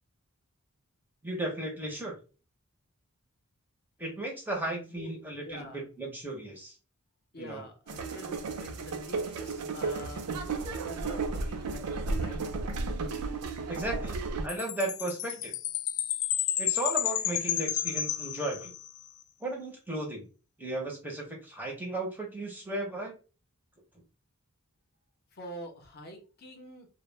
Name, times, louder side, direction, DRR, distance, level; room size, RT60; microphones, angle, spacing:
voice 1, 1.2-2.1 4.0-6.7 7.4-7.7 13.7-15.5 16.6-18.7 19.4-20.2 20.6-23.1, right 1 dB, 10° right, -1 dB, 0.5 m, -35 dB
voice 2, 4.9-5.8 7.3-12.4 25.3-26.9, equal, 45° left, 3 dB, 0.6 m, -46 dB
sound 1, 7.9-14.5, right 3 dB, 85° right, 0.4 m, -33 dB
Chime, 14.5-19.0, left 11 dB, 75° left, 0.3 m, -31 dB
2.0 x 2.0 x 3.1 m, 0.34 s
head